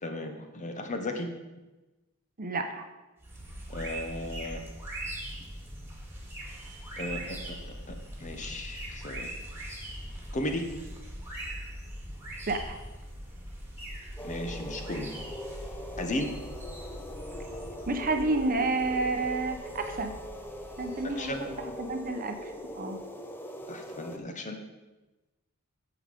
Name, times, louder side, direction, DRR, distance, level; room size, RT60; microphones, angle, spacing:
voice 1, 0.0-1.3 3.7-4.6 7.0-7.6 7.9-8.0 8.2-9.3 10.3-10.6 14.2-15.1 16.0-16.3 21.0-21.5 23.7-24.6, left 1 dB, 35° left, 5 dB, 1.0 m, -35 dB
voice 2, 2.4-2.9 12.5-12.8 17.9-20.1 20.8-21.3 21.8-23.0, right 3 dB, 40° right, 6 dB, 0.8 m, -30 dB
sound 1, 3.2-22.6, right 1 dB, 10° right, 2.0 m, -42 dB
sound 2, 14.2-24.2, equal, 10° left, 0.7 m, -41 dB
9.7 x 7.1 x 5.2 m, 1.1 s
head